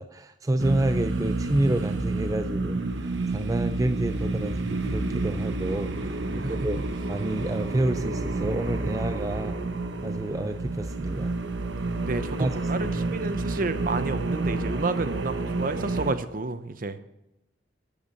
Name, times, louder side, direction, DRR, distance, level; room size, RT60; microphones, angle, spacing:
voice 1, 0.0-6.8 7.1-9.6 10.0-11.3 12.4-13.2, right 1 dB, 20° right, 9 dB, 0.4 m, -29 dB
sound 1, 0.6-16.1, right 2 dB, 80° right, 1.0 m, -29 dB
voice 2, 6.3-6.7 12.0-17.0, right 3 dB, 50° right, 11 dB, 0.8 m, -31 dB
13.5 x 8.5 x 5.4 m, 0.92 s
head